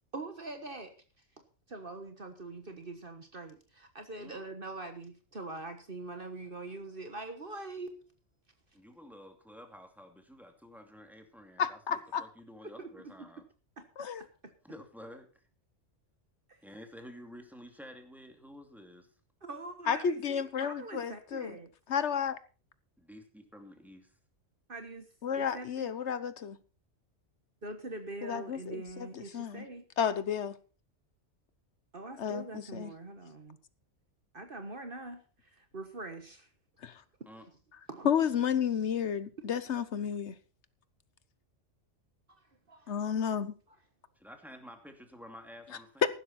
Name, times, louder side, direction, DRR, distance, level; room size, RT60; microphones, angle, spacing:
voice 1, 0.1-1.2 1.7-8.0 12.6-12.9 13.2-13.3 13.8-13.9 14.4-14.5 16.5-16.6 19.4-21.7 24.7-26.1 27.6-29.8 31.9-33.6 34.3-36.5 37.9-38.1 42.7-42.9, right 2 dB, 45° right, 7 dB, 1.6 m, -43 dB
voice 2, 8.7-13.4 14.6-15.4 16.6-19.1 23.0-24.1 37.3-37.4 44.2-46.1, equal, ahead, 4 dB, 2.6 m, -51 dB
voice 3, 11.6-12.2 14.0-14.2 19.9-21.6 21.9-22.4 25.2-26.6 28.2-29.6 30.0-30.5 32.2-32.9 36.8-37.0 38.0-40.3 42.9-43.5, left 7 dB, 65° left, 14 dB, 1.3 m, -32 dB
15.0 x 12.0 x 4.3 m, 0.35 s
omnidirectional pair, 1.3 m